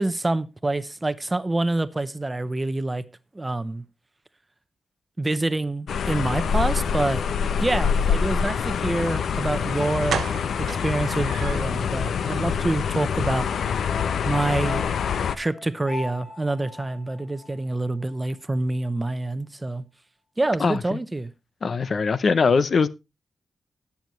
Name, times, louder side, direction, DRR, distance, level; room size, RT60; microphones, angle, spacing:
voice 1, 0.0-3.0 3.3-3.8 5.2-7.2 7.6-10.2 10.6-13.5 14.2-14.9 15.4-19.8 20.4-21.3, right 2 dB, 20° right, 0.8 m, -26 dB
sound 1, 5.9-15.4, left 7 dB, 85° left, 0.7 m, -25 dB
sound 2, 9.4-9.5 10.1-11.9 12.2-12.3 12.7-12.8 13.1-13.2, right 8 dB, 90° right, 0.5 m, -33 dB
sound 3, 13.9-18.3 18.6-18.7, left 3 dB, 35° left, 1.6 m, -40 dB
voice 2, 20.6-21.0 21.6-22.9, left 5 dB, 50° left, 0.6 m, -21 dB
18.5 x 7.1 x 3.1 m
wide cardioid pair, 125°, 0 cm